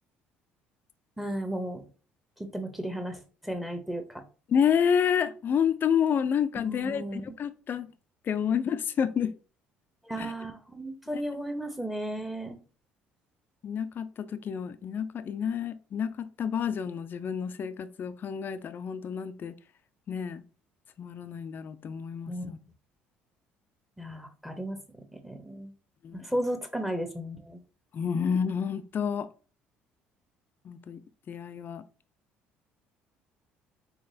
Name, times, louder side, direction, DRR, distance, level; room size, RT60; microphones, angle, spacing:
voice 1, 1.2-1.8 2.4-4.2 6.5-7.4 10.0-12.6 22.3-22.5 24.0-24.8 25.1-25.7 26.1-27.6, right 1 dB, 5° right, 0.8 m, -34 dB
voice 2, 4.5-7.9 8.3-9.3 10.2-10.3 13.6-19.5 20.1-20.4 21.0-22.6 26.0-26.3 27.9-29.3 30.7-31.0 31.3-31.8, left 7 dB, 45° left, 0.4 m, -29 dB
3.9 x 2.9 x 2.6 m
supercardioid pair, 70°, 5 cm